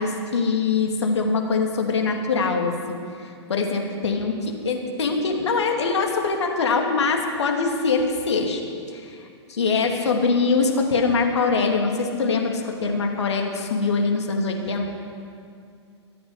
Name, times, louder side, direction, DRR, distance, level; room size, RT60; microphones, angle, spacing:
voice 1, 0.0-8.6 8.9-14.9, left 4 dB, 70° left, 2 dB, 2.4 m, -23 dB
24.0 x 8.6 x 5.6 m, 2.3 s
figure-of-eight pair, 110°, 15 cm